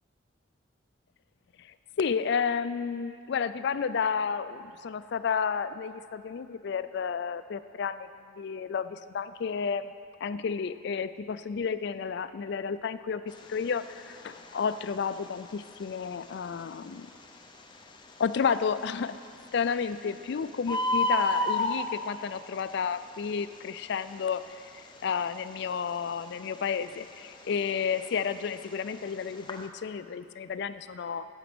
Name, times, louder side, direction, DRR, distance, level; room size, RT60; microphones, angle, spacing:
voice 1, 1.6-8.1 8.4-9.9 10.2-17.1 18.2-19.2 19.5-24.6 25.0-31.3, left 6 dB, 60° left, 13 dB, 0.4 m, -31 dB
Bird, 13.3-29.7, left 1 dB, 25° left, 0.7 m, -35 dB
11.0 x 8.1 x 6.1 m, 2.3 s
head